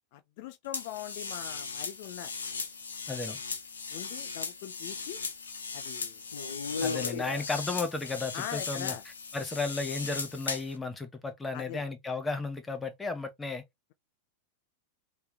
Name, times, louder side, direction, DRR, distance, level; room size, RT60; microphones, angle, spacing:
voice 1, 0.1-2.3 3.3-3.4 3.9-5.2 5.7-6.2 7.1-7.2 8.3-9.0 11.5-11.8, left 13 dB, 60° left, 0.5 m, -41 dB
sound 1, 0.7-10.8, left 4 dB, 90° left, 0.8 m, -37 dB
voice 2, 3.1-3.4 6.8-8.9 9.3-13.6, left 3 dB, 10° left, 1.2 m, -34 dB
3.3 x 3.0 x 3.4 m
hypercardioid pair, 100°, 0 cm